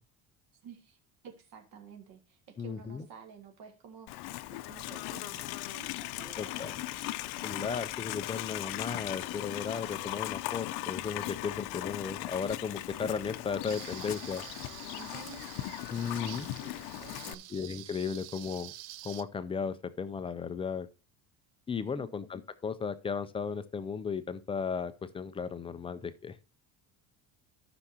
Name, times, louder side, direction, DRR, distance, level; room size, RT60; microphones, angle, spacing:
voice 1, 0.6-1.0 1.2-6.7 7.6-7.8 14.9-15.5 16.6-17.4 21.9-22.1, right 6 dB, 60° right, 1.9 m, -51 dB
voice 2, 2.6-3.1 6.4-6.8 7.4-14.4 15.9-16.5 17.5-18.7 19.0-20.9 21.7-26.4, left 6 dB, 15° left, 0.4 m, -35 dB
Livestock farm animals working animals, 4.1-17.3, left 16 dB, 70° left, 0.7 m, -38 dB
sound 1, 13.7-19.2, right 14 dB, 85° right, 0.9 m, -47 dB
13.5 x 6.0 x 2.8 m
cardioid pair, 165°, 40 cm